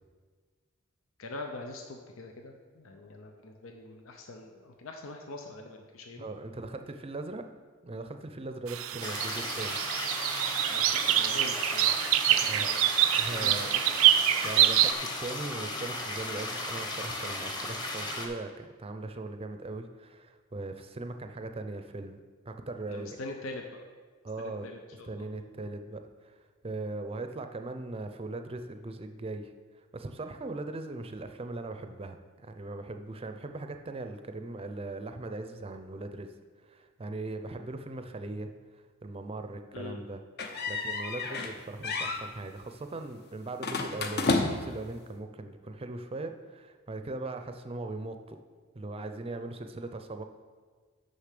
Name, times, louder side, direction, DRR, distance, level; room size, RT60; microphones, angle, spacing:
voice 1, 1.2-6.3 10.7-12.0 12.3-12.9 13.4-13.9 22.9-23.8 24.4-25.1 39.7-40.0, left 2 dB, 90° left, 3 dB, 0.8 m, -43 dB
voice 2, 6.2-7.4 7.8-9.8 12.5-12.7 13.2-13.7 14.4-22.2 22.5-23.2 24.2-24.7 25.0-26.4 26.6-29.5 29.9-32.2 32.4-36.3 36.6-38.5 39.0-40.2 40.7-48.4 48.7-50.2, right 2 dB, 30° right, 7 dB, 0.5 m, -39 dB
sound 1, 8.7-14.9, right 12 dB, 80° right, 0.4 m, -26 dB
sound 2, 9.0-18.3, left 1 dB, 20° left, 1.0 m, -36 dB
sound 3, 40.4-41.6 41.8-42.2 43.6-44.8, left 3 dB, 50° left, 0.8 m, -30 dB
6.7 x 5.5 x 6.6 m, 1.5 s
head